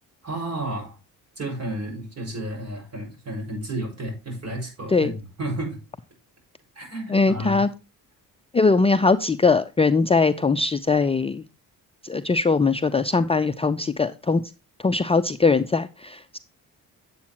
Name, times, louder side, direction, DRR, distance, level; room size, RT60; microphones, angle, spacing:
voice 1, 0.2-1.0 1.4-5.8 6.8-7.6, right 1 dB, 45° right, 6.0 m, -32 dB
voice 2, 7.1-7.7 8.5-11.4 12.0-14.4 14.8-16.4, left 4 dB, 15° left, 0.5 m, -21 dB
8.5 x 8.4 x 2.9 m
cardioid pair, 100°, 36 cm